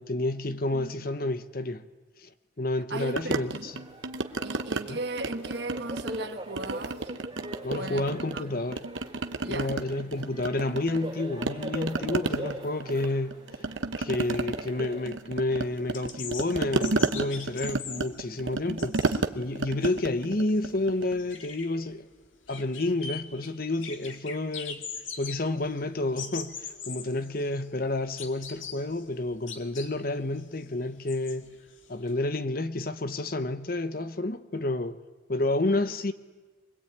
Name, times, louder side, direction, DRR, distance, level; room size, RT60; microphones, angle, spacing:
voice 1, 0.0-1.9 2.2-2.3 2.6-3.8 4.9-5.0 7.6-8.8 9.5-13.4 14.0-22.1 22.5-24.9 25.2-31.5 31.9-35.0 35.3-36.1, left 2 dB, 50° left, 0.9 m, -30 dB
voice 2, 2.9-3.7 4.4-7.0 7.7-8.1 8.3-8.4 9.4-9.7, right 2 dB, 60° right, 1.4 m, -36 dB
sound 1, 3.2-4.8 5.2-6.3 6.6-8.4 8.7-11.1 11.4-21.2, right 3 dB, 80° right, 0.9 m, -32 dB
sound 2, 3.6-15.0, right 1 dB, 25° right, 4.8 m, -42 dB
sound 3, 15.7-32.1, left 6 dB, 90° left, 2.1 m, -42 dB
24.0 x 20.5 x 8.9 m
head